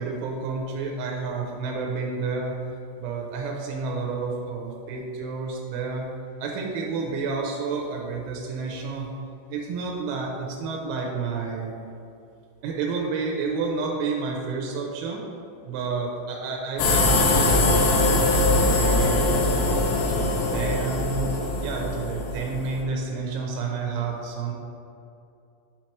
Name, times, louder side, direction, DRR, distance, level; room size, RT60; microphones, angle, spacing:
voice 1, 0.0-2.6 3.0-6.1 6.4-9.1 9.5-11.7 12.6-15.2 15.6-19.3 19.9-21.3 21.6-24.5, right 4 dB, 90° right, 0 dB, 3.1 m, -30 dB
sound 1, 16.8-22.8, left 2 dB, 85° left, 3.1 m, -22 dB
7.4 x 3.0 x 4.4 m, 2.6 s
omnidirectional pair, 5.4 m